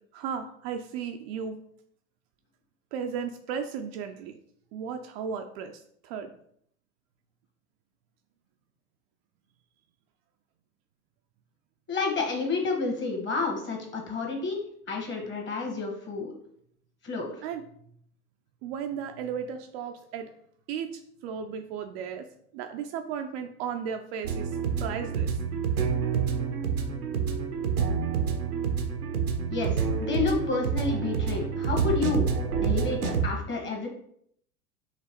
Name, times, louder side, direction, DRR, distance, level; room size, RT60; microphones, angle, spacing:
voice 1, 0.1-1.6 2.9-4.4 4.7-6.3 17.4-17.6 18.6-20.3 20.7-20.9 21.2-22.3 22.5-25.4, right 7 dB, 45° right, 5 dB, 0.5 m, -35 dB
voice 2, 11.9-14.6 14.9-16.3 17.0-17.4 29.5-32.3 32.6-33.9, left 4 dB, 25° left, 1 dB, 1.5 m, -30 dB
sound 1, 24.2-33.2, right 6 dB, 80° right, 0.8 m, -28 dB
5.7 x 3.0 x 3.0 m, 0.67 s
figure-of-eight pair, 80°, 44 cm